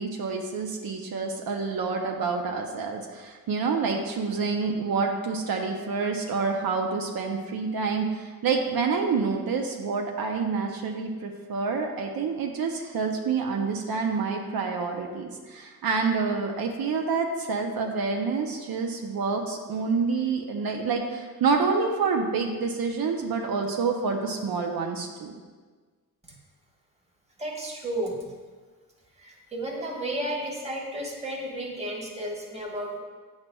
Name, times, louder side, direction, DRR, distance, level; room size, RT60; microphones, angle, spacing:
voice 1, 0.0-25.4, right 4 dB, 75° right, 2 dB, 0.7 m, -28 dB
voice 2, 27.4-28.2 29.2-33.0, right 1 dB, 20° right, -2 dB, 1.3 m, -33 dB
8.8 x 5.8 x 2.2 m, 1.5 s
cardioid pair, 90°, 36 cm